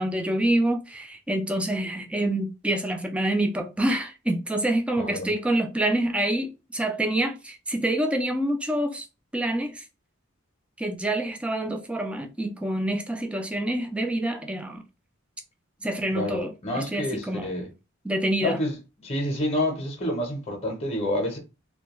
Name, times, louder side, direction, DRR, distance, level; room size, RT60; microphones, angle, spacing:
voice 1, 0.0-9.1 9.3-9.8 10.8-14.8 15.8-17.5 18.0-18.6, right 1 dB, 5° right, 0.3 m, -27 dB
voice 2, 5.0-5.3 16.1-17.7 18.4-18.8 19.0-21.4, left 1 dB, 30° left, 0.7 m, -28 dB
2.2 x 2.1 x 2.9 m
head